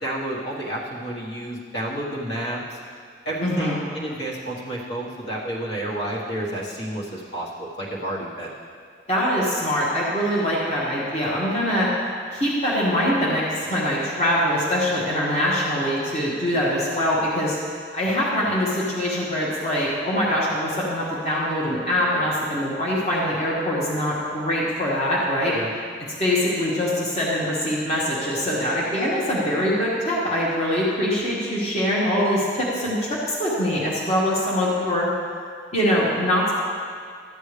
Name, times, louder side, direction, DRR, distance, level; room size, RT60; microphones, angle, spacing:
voice 1, 0.0-2.8 3.2-8.5 25.5-25.7, right 1 dB, 80° left, -5 dB, 1.6 m, -30 dB
voice 2, 3.4-3.8 9.1-11.9 12.3-17.6 17.9-25.6 26.2-35.1 35.7-36.5, equal, 35° left, -6 dB, 1.5 m, -23 dB
13.0 x 7.9 x 3.4 m, 2.1 s
head